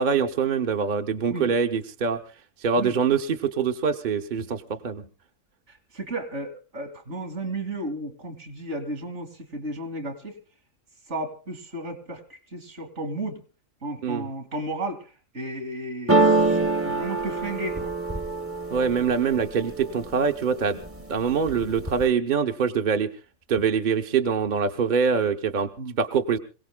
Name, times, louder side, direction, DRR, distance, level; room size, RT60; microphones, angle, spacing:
voice 1, 0.0-2.2 2.6-5.1 14.0-14.3 18.7-20.8 21.1-23.1 23.5-25.7 26.0-26.4, right 6 dB, 45° right, 6 dB, 0.9 m, -24 dB
voice 2, 5.7-10.3 11.1-13.4 13.8-15.1 15.3-17.9 25.8-26.0, right 2 dB, 65° right, 7 dB, 2.8 m, -34 dB
sound 1, 16.1-19.9 20.4-21.0 21.3-22.1, right 3 dB, 15° right, 0.6 m, -24 dB
27.0 x 17.5 x 2.3 m, 0.33 s
omnidirectional pair, 1.3 m